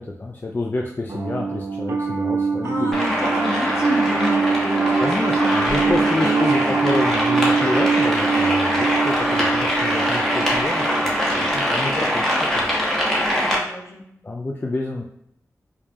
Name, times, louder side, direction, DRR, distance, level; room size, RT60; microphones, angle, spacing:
voice 1, 0.0-3.0 5.0-12.2 12.5-12.7 14.2-15.0, left 2 dB, 30° left, 0 dB, 0.3 m, -28 dB
Piano, 1.1-12.6, right 5 dB, 50° right, 0.4 m, -24 dB
voice 2, 2.6-5.1 5.4-6.8 13.4-14.1, left 2 dB, 55° left, 0 dB, 0.7 m, -30 dB
sound 1, 2.9-13.6, equal, 5° left, 0.9 m, -22 dB
4.7 x 2.3 x 2.6 m, 0.74 s
wide cardioid pair, 85°, 6 cm